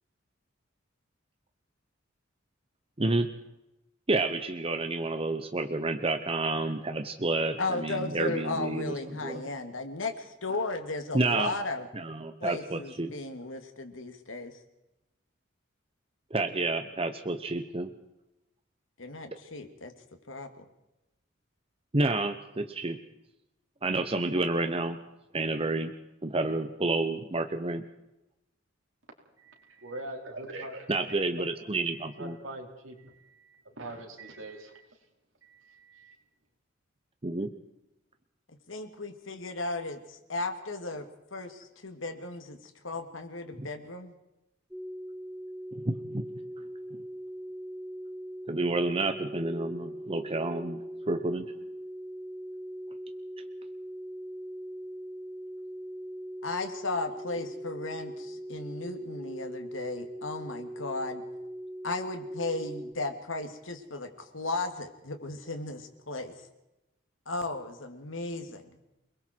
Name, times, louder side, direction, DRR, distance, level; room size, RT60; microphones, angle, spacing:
voice 1, 3.0-3.3 4.1-8.9 9.2-9.4 11.1-11.5 11.9-13.1 16.3-17.9 21.9-23.0 23.8-25.0 25.3-25.9 26.2-27.8 30.9-32.4 37.2-37.5 43.6-43.7 45.8-46.2 48.5-50.8 51.1-51.5, right 2 dB, 30° right, 7 dB, 1.0 m, -29 dB
voice 2, 7.6-11.9 12.4-14.5 19.0-19.9 20.3-20.7 38.7-41.1 41.3-42.6 42.8-44.2 56.4-61.2 61.8-66.3 67.3-68.8, left 3 dB, 80° left, 6 dB, 2.7 m, -35 dB
voice 3, 29.4-31.4 32.2-34.8 35.4-36.1, right 2 dB, 75° right, 1 dB, 4.9 m, -43 dB
sound 1, 44.7-62.9, equal, 5° right, 1.5 m, -41 dB
29.0 x 21.0 x 4.7 m, 0.92 s
head